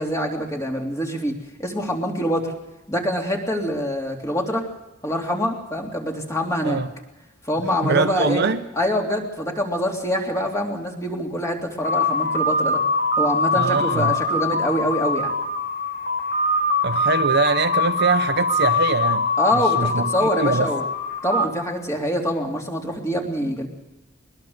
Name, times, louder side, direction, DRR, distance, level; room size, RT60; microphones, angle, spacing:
voice 1, 0.0-1.3 1.6-2.5 2.9-4.7 5.0-6.8 7.5-12.8 13.2-15.3 19.4-20.9 21.2-23.7, equal, 15° left, 3.2 m, -25 dB
voice 2, 7.8-8.6 13.5-14.2 16.8-20.7, right 4 dB, 55° right, 0.8 m, -23 dB
sound 1, 11.8-21.5, left 2 dB, 50° left, 3.1 m, -23 dB
22.5 x 20.5 x 6.6 m
head